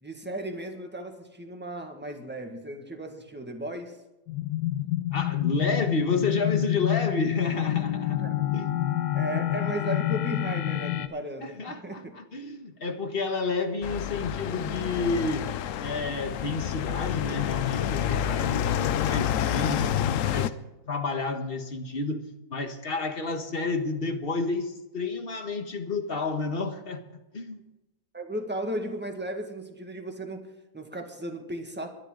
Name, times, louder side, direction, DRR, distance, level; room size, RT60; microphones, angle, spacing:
voice 1, 0.0-4.0 8.2-8.4 9.1-12.2 28.1-31.9, right 1 dB, 5° right, 1.7 m, -35 dB
sound 1, 4.3-11.1, left 14 dB, 90° left, 1.5 m, -28 dB
voice 2, 5.1-8.7 11.4-15.5 15.8-20.5 20.9-22.2 22.5-27.0 27.3-27.6, left 3 dB, 35° left, 1.5 m, -30 dB
sound 2, 13.8-20.5, left 10 dB, 65° left, 0.9 m, -28 dB
23.0 x 10.5 x 3.9 m
omnidirectional pair, 1.8 m